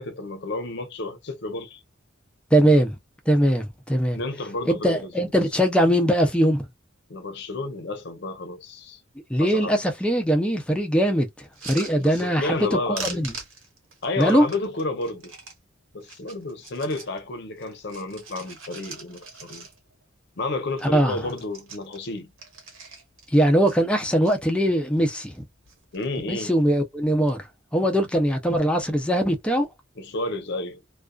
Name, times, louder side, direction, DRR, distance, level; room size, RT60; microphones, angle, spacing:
voice 1, 0.0-1.8 4.1-5.3 7.1-9.0 9.4-9.8 11.9-13.2 14.0-15.3 15.9-19.7 20.4-22.3 25.9-26.5 30.0-30.8, left 2 dB, 60° left, 0.7 m, -31 dB
voice 2, 2.5-2.9 3.3-4.2 4.7-6.6 9.3-11.3 11.6-12.7 13.0-13.3 14.2-14.4 20.9-21.2 23.3-25.4 26.3-27.4 27.7-29.7, equal, 5° left, 0.5 m, -21 dB
sound 1, 11.4-12.7 12.9-15.6 16.0-17.2 17.6-20.0 20.4-20.5 20.7-21.0 21.2-23.3 23.6-24.3 24.9-25.4 25.7-26.2 27.0-27.3, right 4 dB, 85° right, 1.2 m, -41 dB
2.4 x 2.3 x 2.2 m
head